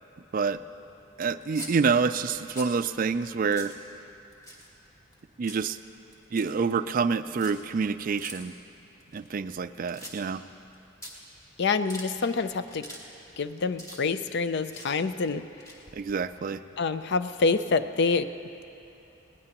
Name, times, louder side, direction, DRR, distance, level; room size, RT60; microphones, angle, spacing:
voice 1, 1.2-3.7 5.4-5.8 6.3-8.5 9.1-10.4 15.9-16.6, right 5 dB, 45° right, 12 dB, 0.4 m, -27 dB
sound 1, 1.4-1.7 2.3-2.8 3.2-3.3 3.5-3.8 4.3-4.9 5.1-5.7 6.1-6.5 7.3-7.5 8.2-8.3 9.0-9.6 9.9-10.4 10.7-10.8 11.0-11.1 11.6-12.1 12.6-13.0 13.3-14.3 14.6-14.9 15.5-16.4, equal, 15° left, 2.1 m, -43 dB
voice 2, 11.6-12.9 13.4-15.4 16.8-18.3, left 4 dB, 60° left, 11 dB, 0.5 m, -26 dB
20.5 x 17.5 x 3.0 m, 2.8 s
head